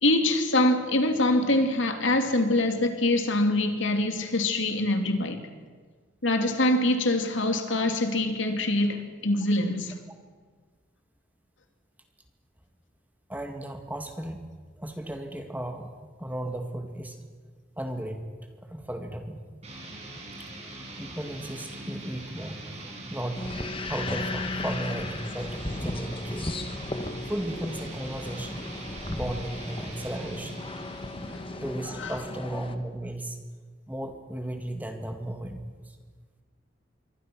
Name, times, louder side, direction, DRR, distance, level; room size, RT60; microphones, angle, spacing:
voice 1, 0.0-5.4 6.2-10.0 31.3-31.4 32.0-32.2, left 1 dB, 75° left, 2.6 m, -24 dB
voice 2, 13.3-14.5 14.8-17.2 17.8-18.3 18.7-19.4 20.4-20.5 21.0-23.5 23.9-26.5 27.3-28.6 29.1-30.7 31.6-33.4 33.9-35.6 35.9-36.0, right 1 dB, 10° right, 1.9 m, -35 dB
sound 1, 19.6-32.1, right 1 dB, 35° right, 6.1 m, -42 dB
sound 2, 23.3-32.8, left 2 dB, 25° left, 1.2 m, -35 dB
26.5 x 24.0 x 6.2 m
head